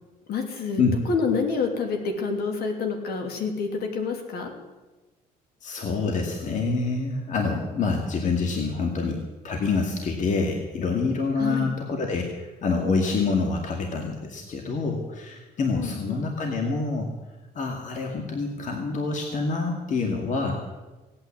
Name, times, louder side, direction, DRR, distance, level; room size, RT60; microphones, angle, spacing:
voice 1, 0.3-4.5 11.4-11.7 15.7-16.2, left 5 dB, 65° left, 4 dB, 3.0 m, -28 dB
voice 2, 5.6-17.1 17.5-20.6, left 4 dB, 50° left, 2 dB, 2.3 m, -26 dB
17.5 x 9.1 x 8.5 m, 1.2 s
cardioid pair, 110°, 17 cm